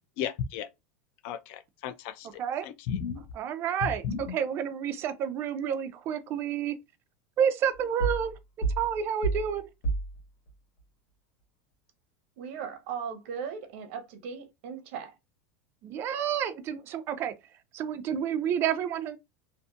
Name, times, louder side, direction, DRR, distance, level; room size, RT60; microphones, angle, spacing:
voice 1, 0.2-0.7 1.2-2.3 2.6-3.2 4.0-4.3, left 8 dB, 55° left, 0.4 m, -34 dB
voice 2, 3.3-6.7 7.4-8.4 8.8-9.7 15.8-17.3 17.7-19.2, right 8 dB, 35° right, 0.4 m, -29 dB
sound 1, 8.0-8.4 8.6-9.6 9.8-10.2, right 3 dB, 85° left, 1.4 m, -29 dB
voice 3, 12.4-15.1, right 7 dB, 65° right, 0.7 m, -38 dB
2.5 x 2.5 x 2.4 m
supercardioid pair, 155°, 7 cm